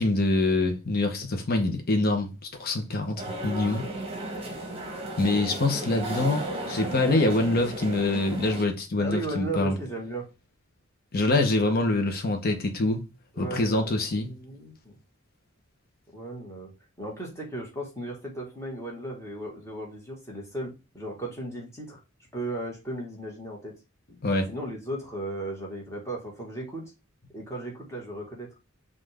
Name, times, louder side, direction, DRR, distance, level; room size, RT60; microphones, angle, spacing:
voice 1, 0.0-2.3 2.6-3.8 5.2-9.7 11.1-13.0 13.4-14.3 24.2-24.5, left 2 dB, 50° left, 0.9 m, -25 dB
sound 1, 3.2-8.6, right 1 dB, 30° right, 1.0 m, -35 dB
voice 2, 9.0-10.3 13.3-14.9 16.1-16.7 17.0-22.0 22.3-23.7 24.5-26.9 27.3-28.5, right 1 dB, 15° left, 1.6 m, -36 dB
5.6 x 2.5 x 3.4 m
head